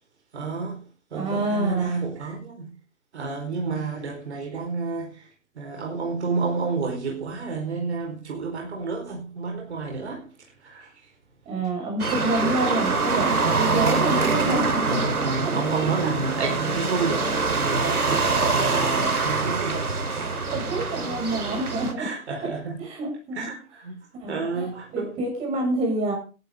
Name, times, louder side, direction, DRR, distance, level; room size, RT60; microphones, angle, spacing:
voice 1, 0.3-0.8 1.1-2.7 3.1-5.3 5.5-10.3 10.6-11.1 12.3-12.6 14.8-19.9 20.3-20.5 22.0-22.8 23.3-23.9 24.3-25.2, right 4 dB, 50° right, 4.8 m, -30 dB
voice 2, 1.1-1.9 11.4-15.0 15.4-15.5 16.0-16.1 17.1-17.2 20.5-22.1 22.4-23.5 24.1-24.6 24.9-26.1, right 2 dB, 15° right, 6.7 m, -28 dB
sound 1, 12.0-21.9, right 4 dB, 85° right, 4.1 m, -24 dB
19.0 x 12.0 x 3.8 m
hypercardioid pair, 155°, 43 cm